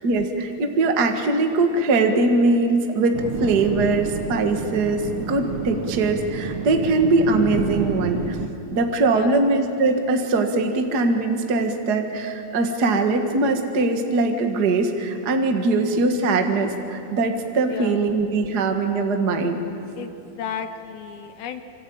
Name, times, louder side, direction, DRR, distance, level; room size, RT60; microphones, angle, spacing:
voice 1, 0.0-8.4 8.7-19.6, right 3 dB, 45° right, 4 dB, 1.3 m, -21 dB
sound 1, 3.1-8.5, right 5 dB, 75° right, 1.2 m, -29 dB
voice 2, 17.7-18.1 20.0-21.6, left 8 dB, 75° left, 7 dB, 2.8 m, -34 dB
26.5 x 25.5 x 8.7 m, 2.8 s
omnidirectional pair, 4.5 m